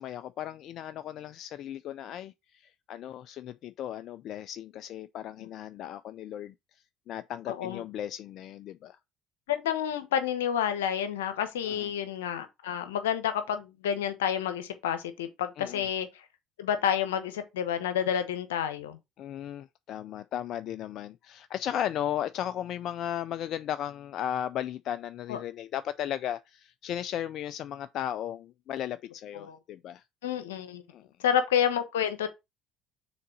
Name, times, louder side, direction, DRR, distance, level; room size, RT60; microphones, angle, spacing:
voice 1, 0.0-2.3 2.9-6.5 7.1-9.0 11.6-11.9 15.6-15.8 19.2-30.0 30.9-31.0, left 10 dB, 60° left, 0.4 m, -35 dB
voice 2, 7.5-7.8 9.5-16.2 16.6-19.0 25.3-25.4 29.3-29.6 30.2-30.8 31.2-32.3, left 9 dB, 85° left, 1.0 m, -29 dB
6.7 x 3.9 x 4.1 m
hypercardioid pair, 65°, 0 cm